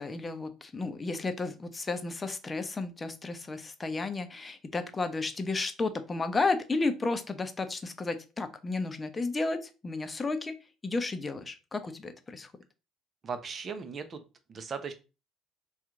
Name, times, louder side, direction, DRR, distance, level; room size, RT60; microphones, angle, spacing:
voice 1, 0.0-10.5 10.8-12.5, left 3 dB, 25° left, 9 dB, 0.6 m, -32 dB
voice 2, 13.2-14.2 14.5-14.9, right 5 dB, 40° right, 8 dB, 0.7 m, -37 dB
2.8 x 2.4 x 3.7 m, 0.30 s
hypercardioid pair, 70°, 0 cm